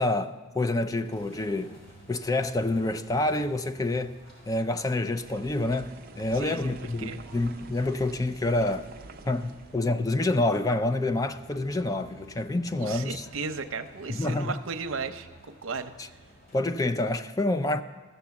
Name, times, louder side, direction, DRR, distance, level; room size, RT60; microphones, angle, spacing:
voice 1, 0.0-1.7 2.1-4.1 4.5-8.9 9.3-13.3 14.1-14.6 16.5-17.8, left 2 dB, 20° left, 0.4 m, -27 dB
sound 1, 1.0-16.8, right 1 dB, 60° left, 4.6 m, -53 dB
sound 2, 5.2-9.9, right 3 dB, 50° right, 0.5 m, -47 dB
voice 2, 6.3-6.7 7.0-7.2 12.7-16.2, right 4 dB, 85° right, 0.7 m, -35 dB
14.5 x 6.9 x 7.0 m
head